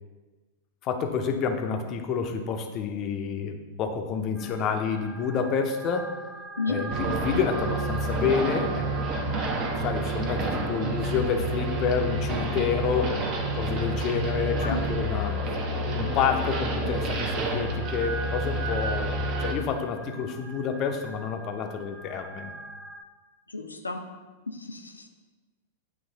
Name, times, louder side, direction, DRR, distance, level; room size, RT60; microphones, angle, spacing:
voice 1, 0.8-6.1 6.7-9.1 9.8-13.2 13.5-15.4 15.9-22.5, left 6 dB, 35° left, 5 dB, 0.6 m, -29 dB
sound 1, 4.3-23.0, right 3 dB, 15° right, 0.4 m, -43 dB
sound 2, 6.9-19.5, right 1 dB, 35° right, 0.8 m, -29 dB
voice 2, 23.5-24.0 24.5-25.1, left 3 dB, 80° left, 5 dB, 0.6 m, -32 dB
8.8 x 3.1 x 3.9 m, 1.3 s
figure-of-eight pair, 95°, 0 cm